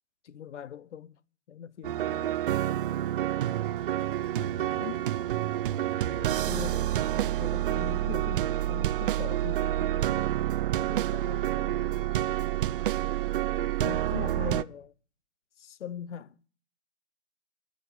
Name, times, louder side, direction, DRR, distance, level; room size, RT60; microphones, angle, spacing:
voice 1, 0.2-1.2 1.5-2.3 3.9-5.1 6.0-10.2 10.9-12.3 13.5-14.9 15.6-16.4, left 9 dB, 75° left, 0.9 m, -42 dB
sound 1, 1.8-14.6, right 13 dB, 50° right, 0.5 m, -28 dB
10.5 x 6.2 x 8.3 m
hypercardioid pair, 150°, 35 cm